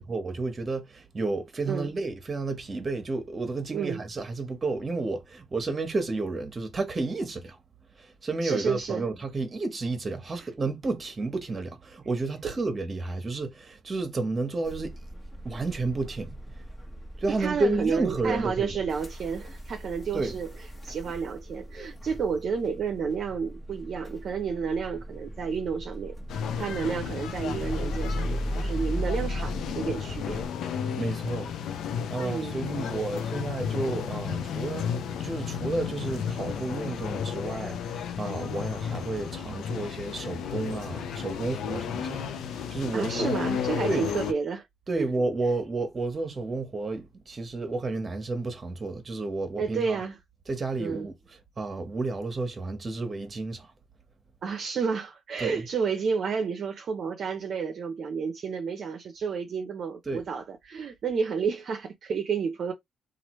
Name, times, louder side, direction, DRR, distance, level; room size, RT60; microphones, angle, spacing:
voice 1, 0.0-7.6 8.0-15.0 15.4-16.4 17.2-18.7 20.1-20.4 31.0-31.5 32.1-43.3 43.9-44.1 44.9-50.0 50.5-51.1 51.6-53.7 55.4-55.7 60.1-60.2, right 3 dB, 35° right, 1.1 m, -31 dB
voice 2, 3.7-4.0 8.4-9.1 10.4-10.5 17.4-20.5 20.8-30.4 32.2-32.5 42.9-44.7 45.0-45.1 49.6-50.2 50.8-51.1 54.4-62.7, right 6 dB, 55° right, 0.6 m, -31 dB
sound 1, 14.6-30.5, equal, 25° left, 1.2 m, -37 dB
sound 2, 26.3-44.3, left 7 dB, 80° left, 0.5 m, -33 dB
3.1 x 2.5 x 3.1 m
cardioid pair, 90°, 0 cm